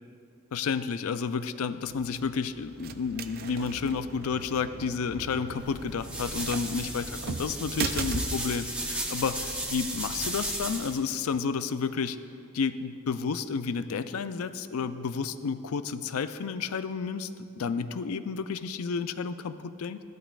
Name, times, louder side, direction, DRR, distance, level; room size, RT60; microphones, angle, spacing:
voice 1, 0.5-12.2 12.5-17.3 17.6-20.0, left 5 dB, 90° left, 12 dB, 0.4 m, -31 dB
sound 1, 1.8-11.5, right 5 dB, 45° right, 0.4 m, -40 dB
sound 2, 5.6-11.0, right 1 dB, 5° right, 0.9 m, -35 dB
14.5 x 12.5 x 2.4 m, 2.5 s
head